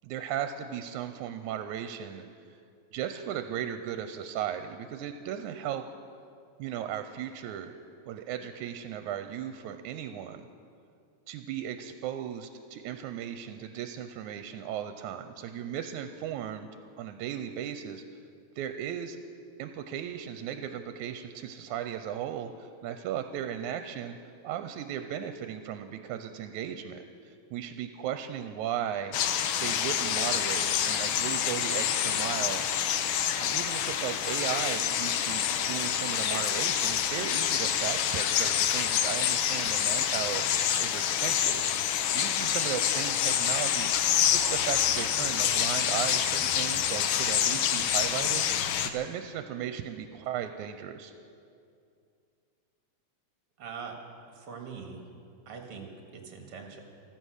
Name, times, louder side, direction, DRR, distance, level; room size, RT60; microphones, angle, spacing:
voice 1, 0.0-2.3 2.5-2.6 2.9-5.9 6.6-7.7 8.1-10.5 11.3-16.7 17.0-18.0 18.6-19.2 19.6-24.2 24.4-29.2 29.6-32.7 33.4-40.5 40.8-41.6 42.1-43.9 44.2-48.4 48.8-51.1, right 9 dB, 85° right, 8 dB, 2.0 m, -36 dB
sound 1, 29.1-48.9, left 9 dB, 75° left, 1.3 m, -27 dB
voice 2, 53.6-53.9 54.3-55.0 55.5-55.9 56.1-56.8, right 6 dB, 50° right, 3 dB, 2.4 m, -42 dB
15.0 x 14.5 x 6.4 m, 2.4 s
omnidirectional pair, 3.4 m